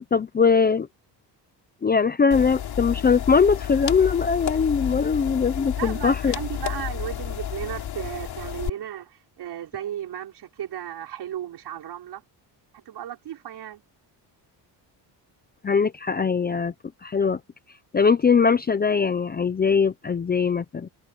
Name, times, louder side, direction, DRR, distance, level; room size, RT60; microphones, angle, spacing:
voice 1, 0.1-0.9 1.8-6.3 15.6-16.7 17.0-17.4 17.9-20.9, left 5 dB, 20° left, 0.6 m, -21 dB
sound 1, 2.3-8.7, left 10 dB, 55° left, 3.3 m, -31 dB
voice 2, 5.7-12.2 12.7-13.8, right 10 dB, 65° right, 4.8 m, -35 dB
cardioid pair, 155°, 44 cm